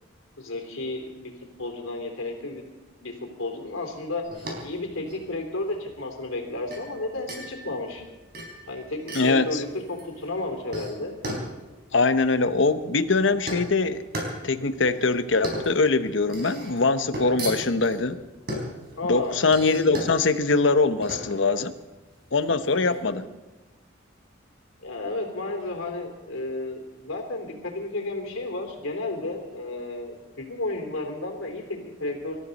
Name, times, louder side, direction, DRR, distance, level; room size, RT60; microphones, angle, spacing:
voice 1, 0.4-1.3 1.6-2.6 3.0-3.1 3.4-8.0 8.7-11.2 19.0-19.4 22.7-23.2 24.8-32.4, left 2 dB, 85° left, 3 dB, 3.2 m, -32 dB
sound 1, 4.2-23.0, equal, 50° right, 4.1 m, -37 dB
voice 2, 9.1-9.6 11.9-14.0 14.4-18.2 19.1-21.7 22.3-23.3, left 3 dB, 70° left, 10 dB, 0.9 m, -22 dB
25.5 x 13.5 x 4.1 m, 1.1 s
head